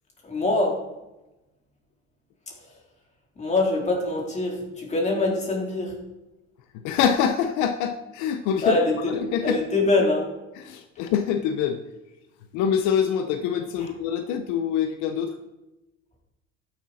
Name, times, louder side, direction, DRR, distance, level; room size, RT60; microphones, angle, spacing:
voice 1, 0.2-0.8 3.4-5.9 8.6-9.1 9.4-10.3, left 2 dB, 25° left, -1 dB, 3.7 m, -24 dB
voice 2, 6.7-8.8 9.1-9.6 10.5-11.8 12.5-15.3, left 8 dB, 80° left, 7 dB, 1.0 m, -25 dB
13.0 x 10.5 x 4.3 m, 1.0 s
cardioid pair, 130°, 29 cm